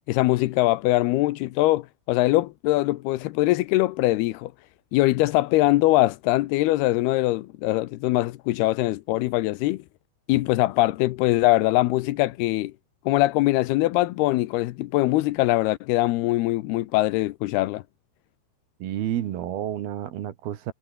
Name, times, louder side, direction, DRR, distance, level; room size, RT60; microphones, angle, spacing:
voice 1, 0.1-4.5 4.9-9.8 10.3-12.7 13.1-17.8, left 18 dB, 90° left, 2.2 m, -22 dB
voice 2, 18.8-20.7, right 11 dB, 60° right, 3.1 m, -30 dB
omnidirectional pair, 5.6 m